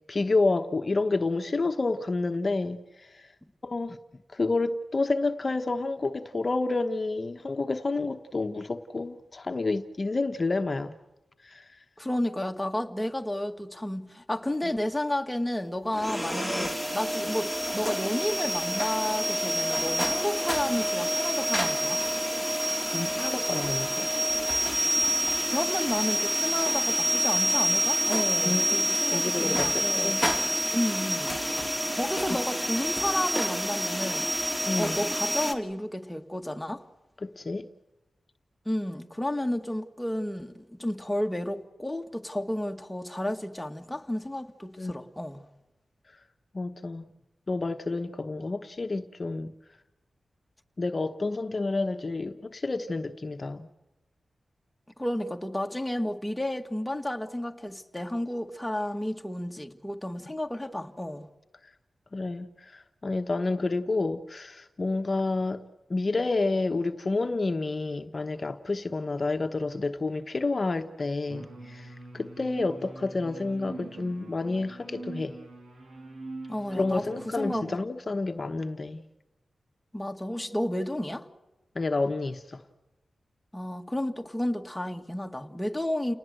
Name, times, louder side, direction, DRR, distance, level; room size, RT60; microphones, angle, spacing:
voice 1, 0.1-3.3 3.6-4.0 4.3-10.9 11.4-11.6 16.6-16.7 22.9-24.3 28.4-28.9 29.1-30.2 34.7-35.0 37.2-37.7 44.8-44.9 46.5-47.1 47.5-49.5 50.8-53.7 62.1-65.6 65.9-75.4 76.7-79.0 81.7-82.6, left 3 dB, 40° left, 1.1 m, -29 dB
voice 2, 12.0-22.0 25.5-30.1 30.7-31.4 31.9-34.3 34.7-36.8 38.7-45.4 55.0-61.3 76.5-77.8 79.9-81.3 83.5-86.1, left 1 dB, 5° left, 1.9 m, -32 dB
sound 1, 15.9-35.5, equal, 10° right, 2.3 m, -28 dB
sound 2, 71.3-77.7, right 3 dB, 85° right, 7.3 m, -43 dB
29.5 x 19.5 x 7.9 m
wide cardioid pair, 100°, 0 cm